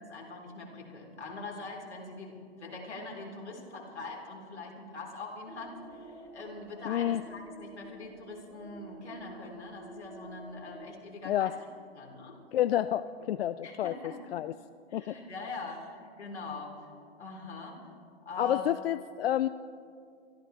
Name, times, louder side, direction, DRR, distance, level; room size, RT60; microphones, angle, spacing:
voice 1, 0.0-11.5 11.9-12.4 13.2-13.3 13.6-14.4 14.9-16.9 17.2-17.8 18.3-18.7, left 3 dB, 90° left, -1 dB, 3.8 m, -43 dB
sound 1, 5.5-10.9, right 1 dB, 10° right, 2.7 m, -49 dB
voice 2, 6.9-7.2 11.2-11.5 12.5-13.9 14.3-14.5 14.9-15.2 18.4-19.5, left 12 dB, 60° left, 12 dB, 0.5 m, -29 dB
24.5 x 13.5 x 3.4 m, 2.3 s
hypercardioid pair, 125°, 33 cm